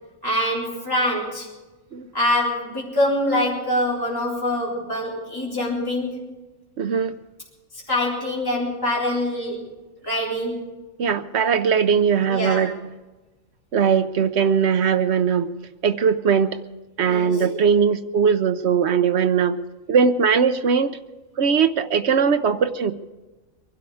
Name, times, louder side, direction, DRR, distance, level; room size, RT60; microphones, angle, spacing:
voice 1, 0.2-1.5 2.1-6.3 7.7-9.7 10.0-10.7 12.3-12.7 17.0-17.4, left 1 dB, 15° left, -5 dB, 3.8 m, -24 dB
voice 2, 6.8-7.1 11.0-12.8 13.7-15.5 15.8-16.6 17.0-19.6 19.9-21.0 21.4-22.9, right 6 dB, 60° right, 10 dB, 1.0 m, -20 dB
23.5 x 12.0 x 4.8 m, 1.1 s
omnidirectional pair, 1.4 m